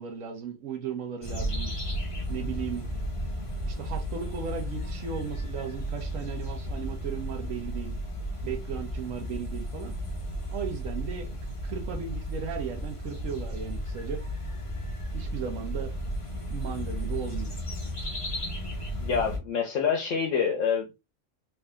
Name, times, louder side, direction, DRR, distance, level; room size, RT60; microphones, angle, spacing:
voice 1, 0.0-1.7 2.3-2.9 3.6-8.0 8.4-9.9 10.5-14.2 15.1-15.9 16.5-17.5, right 7 dB, 85° right, 1.2 m, -36 dB
sound 1, 1.2-19.4, equal, 30° left, 0.9 m, -34 dB
voice 2, 19.0-21.0, left 6 dB, 75° left, 1.1 m, -27 dB
3.5 x 2.7 x 3.4 m
omnidirectional pair, 1.3 m